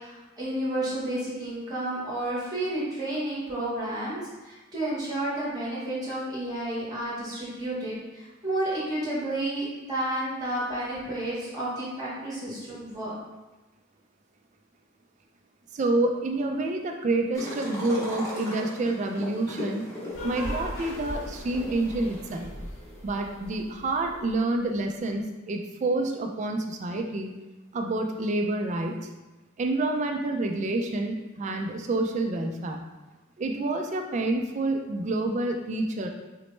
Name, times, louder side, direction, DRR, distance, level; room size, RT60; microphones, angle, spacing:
voice 1, 0.0-13.1, right 1 dB, 20° right, -9 dB, 0.9 m, -31 dB
voice 2, 15.7-19.9 20.2-22.5 23.0-27.4 27.7-29.0 29.6-32.8 33.4-36.1, right 2 dB, 35° right, 3 dB, 0.3 m, -28 dB
sound 1, 17.3-22.4, left 1 dB, 15° left, 0.8 m, -39 dB
sound 2, 20.1-24.8, equal, 80° left, 1.0 m, -39 dB
4.1 x 2.1 x 3.0 m, 1.1 s
head